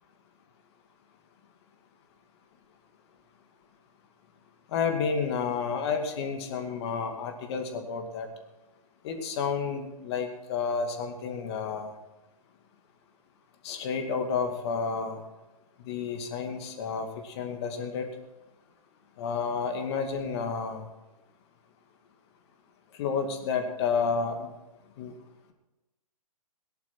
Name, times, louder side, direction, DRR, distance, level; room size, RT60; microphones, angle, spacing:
voice 1, 4.7-8.3 9.0-11.9 13.6-15.2 15.8-18.1 19.2-20.8 23.0-24.5 25.0-25.1, left 5 dB, 45° left, 5 dB, 2.4 m, -30 dB
18.0 x 11.0 x 4.6 m, 1.0 s
hypercardioid pair, 130°, 20 cm